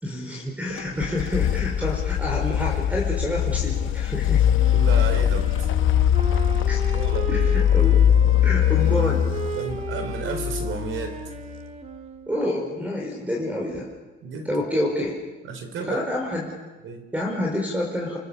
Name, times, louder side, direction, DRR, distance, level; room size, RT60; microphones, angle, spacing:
voice 1, 0.0-4.4 6.7-6.8 7.3-8.0 8.4-9.3 12.3-13.9 14.4-15.2 15.8-16.5 17.1-18.2, left 1 dB, 5° right, -1 dB, 4.8 m, -28 dB
sound 1, 0.8-11.6, left 10 dB, 85° left, 0.9 m, -22 dB
voice 2, 0.9-1.3 4.7-5.7 6.9-7.3 9.5-11.2 14.2-14.5 15.5-16.0 16.8-17.0, right 4 dB, 90° right, 7 dB, 4.4 m, -32 dB
Wind instrument woodwind instrument, 4.6-12.6, right 4 dB, 35° right, 1.9 m, -36 dB
28.0 x 24.5 x 7.0 m, 1.2 s
cardioid pair, 140°, 20 cm